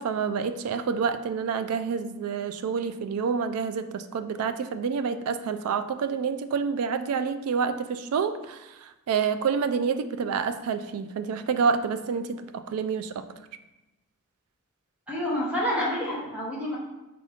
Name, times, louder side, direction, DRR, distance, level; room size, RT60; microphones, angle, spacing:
voice 1, 0.0-13.3, right 6 dB, 85° right, 11 dB, 0.3 m, -28 dB
voice 2, 15.1-16.8, equal, 5° right, -6 dB, 0.9 m, -28 dB
4.2 x 2.6 x 4.9 m, 1.0 s
head